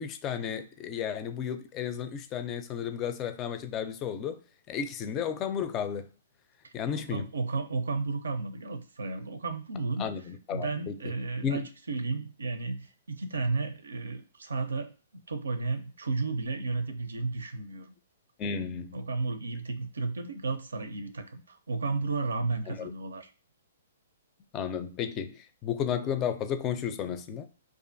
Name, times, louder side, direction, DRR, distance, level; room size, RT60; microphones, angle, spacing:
voice 1, 0.0-4.4 4.7-6.1 6.7-7.2 10.0-11.1 11.4-11.7 18.4-19.0 22.7-22.9 24.5-27.5, left 8 dB, 30° left, 0.4 m, -33 dB
voice 2, 7.1-10.1 10.5-14.9 15.3-17.9 18.9-23.3, right 3 dB, 85° right, 0.4 m, -33 dB
2.5 x 2.3 x 2.6 m
hypercardioid pair, 130°, 0 cm